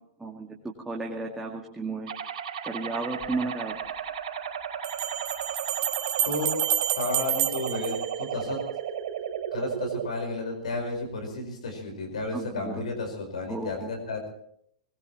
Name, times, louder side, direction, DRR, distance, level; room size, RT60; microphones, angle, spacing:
voice 1, 0.9-2.1 2.6-3.7 12.3-12.9 13.5-13.9, right 3 dB, 10° right, -1 dB, 2.1 m, -33 dB
sound 1, 2.1-10.1, right 8 dB, 60° right, 3.5 m, -34 dB
sound 2, 3.2-3.3 4.8-8.8, right 10 dB, 45° right, 1.6 m, -30 dB
voice 2, 6.9-8.6 9.5-14.3, left 3 dB, 75° left, 3 dB, 4.9 m, -32 dB
20.5 x 20.5 x 3.1 m, 0.68 s
hypercardioid pair, 105°, 4 cm